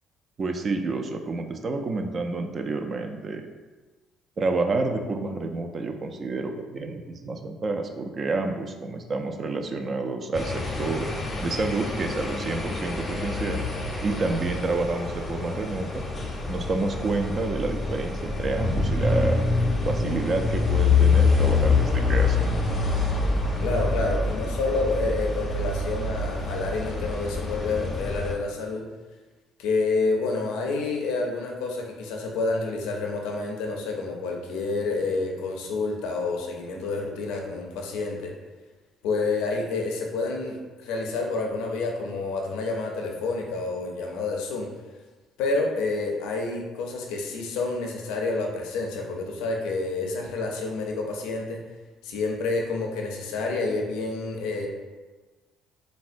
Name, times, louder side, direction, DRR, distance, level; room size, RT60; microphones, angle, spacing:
voice 1, 0.4-3.4 4.4-11.1 11.4-13.7 14.0-16.0 16.5-19.4 19.9-22.5, right 3 dB, 45° right, 5 dB, 0.3 m, -29 dB
sound 1, 10.3-28.3, left 4 dB, 30° left, 0.6 m, -26 dB
voice 2, 23.6-28.8 29.6-38.3 39.0-40.6 40.8-44.7 45.4-51.6 52.0-54.7, left 3 dB, 85° left, 0 dB, 0.4 m, -28 dB
3.4 x 2.1 x 2.5 m, 1.3 s
supercardioid pair, 75°, 0 cm